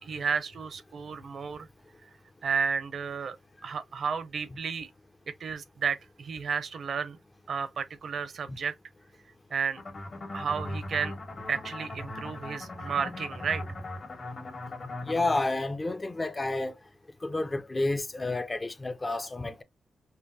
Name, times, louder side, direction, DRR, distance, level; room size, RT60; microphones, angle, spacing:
voice 1, 0.0-1.7 2.4-3.4 3.6-4.9 5.4-7.2 7.5-8.7 9.5-9.8 10.3-11.1 11.5-13.6, right 6 dB, 70° right, 0.6 m, -32 dB
sound 1, 9.8-15.4, left 2 dB, 50° left, 1.6 m, -39 dB
voice 2, 15.1-16.7 17.2-19.6, left 2 dB, 25° left, 0.6 m, -30 dB
5.4 x 2.2 x 2.6 m
cardioid pair, 70°, 0 cm